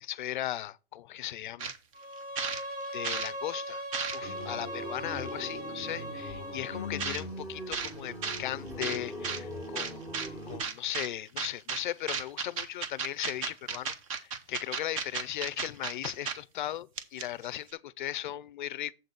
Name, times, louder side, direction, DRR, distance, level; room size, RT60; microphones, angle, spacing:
voice 1, 0.0-1.7 2.9-3.9 4.1-10.1 10.5-18.9, left 13 dB, 50° left, 0.5 m, -37 dB
sound 1, 1.6-1.8 2.1-3.3 3.7-4.4 5.3-5.4 7.0-7.2 7.7-7.9 8.2-8.4 8.8-9.4 9.8-10.3 10.6-11.1 11.4-11.8 12.1-16.3 16.6-16.7 17.0-17.4, right 6 dB, 35° right, 0.8 m, -34 dB
Bowed string instrument, 1.9-7.1, equal, 60° right, 1.9 m, -40 dB
sound 2, 4.2-10.6, left 1 dB, 10° right, 1.4 m, -41 dB
7.6 x 4.0 x 6.6 m
supercardioid pair, 175°, 31 cm